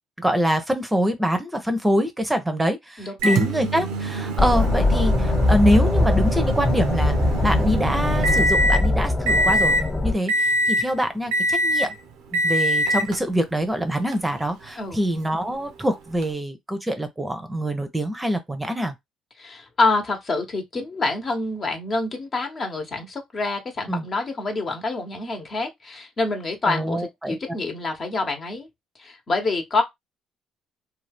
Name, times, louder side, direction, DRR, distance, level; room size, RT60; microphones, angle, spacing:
voice 1, 0.2-7.1 7.4-9.7 10.0-11.9 12.3-18.9 23.9-24.1 26.7-27.4, equal, 10° right, 0.7 m, -24 dB
voice 2, 3.0-3.4 14.8-15.0 19.4-28.7 29.0-29.8, left 3 dB, 45° left, 1.0 m, -27 dB
Microwave oven, 3.2-8.9 9.3-9.9 10.3-10.9 11.3-11.9 12.3-13.2 14.1-14.2 16.2-16.3, equal, 75° right, 0.6 m, -24 dB
sound 1, 4.4-10.1, left 2 dB, 20° left, 1.1 m, -21 dB
2.7 x 2.3 x 3.4 m
supercardioid pair, 60°, 0 cm